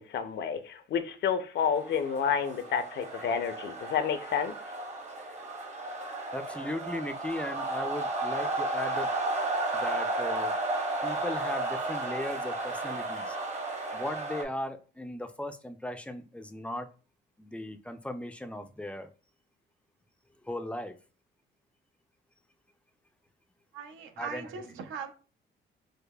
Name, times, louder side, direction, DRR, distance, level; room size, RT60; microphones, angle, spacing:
voice 1, 0.0-4.5, left 7 dB, 60° left, 10 dB, 0.5 m, -30 dB
sound 1, 1.8-14.4, right 2 dB, 35° right, 0.9 m, -33 dB
voice 2, 6.3-9.1 9.7-10.6 11.0-13.4 13.9-16.9 17.4-19.1 20.4-20.9 24.2-24.5, left 1 dB, 5° left, 8 dB, 0.3 m, -37 dB
voice 3, 23.7-25.1, right 6 dB, 80° right, 7 dB, 0.6 m, -40 dB
4.9 x 2.1 x 2.2 m, 0.36 s
cardioid pair, 90°, 20 cm